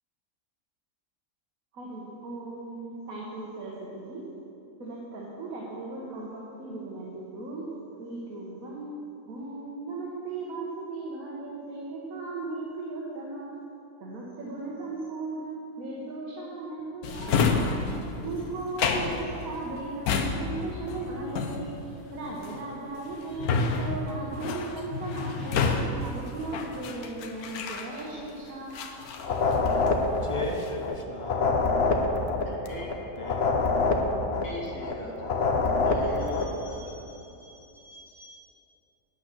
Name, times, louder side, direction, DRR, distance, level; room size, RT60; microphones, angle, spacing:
voice 1, 1.7-4.2 4.8-7.7 8.0-9.0 9.3-13.5 14.0-17.8 18.2-21.7 22.1-28.9, right 3 dB, 70° right, -4 dB, 1.7 m, -37 dB
Drawer open or close, 17.0-28.3 28.7-30.0 30.4-30.9, left 4 dB, 85° left, 1.2 m, -30 dB
sound 1, 29.2-30.9 31.2-34.9 35.2-36.6, left 3 dB, 50° left, 1.0 m, -26 dB
voice 2, 30.2-31.5 32.7-33.6, left 2 dB, 35° left, 2 dB, 0.5 m, -37 dB
voice 3, 32.4-32.9 34.3-38.4, left 1 dB, 70° left, -5 dB, 2.6 m, -42 dB
9.1 x 8.4 x 6.0 m, 2.7 s
omnidirectional pair, 1.5 m